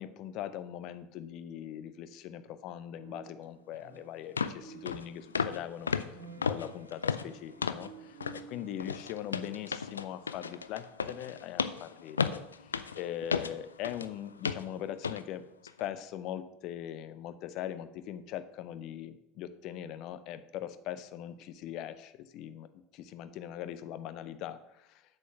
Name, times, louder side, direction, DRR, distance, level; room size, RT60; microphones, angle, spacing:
voice 1, 0.0-5.9 6.5-8.2 8.5-15.4 15.8-22.7 22.9-25.0, left 11 dB, 50° left, 12 dB, 0.7 m, -41 dB
sound 1, 2.9-4.3 4.5-9.8, right 6 dB, 75° right, 1.8 m, -53 dB
sound 2, 3.7-3.8 4.4-4.6 4.9-5.1 5.3-5.6 5.9-7.9 8.2-8.5 8.8-14.1 14.4-14.7 15.0-15.2 15.7-15.8, left 6 dB, 80° left, 0.4 m, -34 dB
8.4 x 6.8 x 5.7 m, 0.85 s
figure-of-eight pair, 70°, 0 cm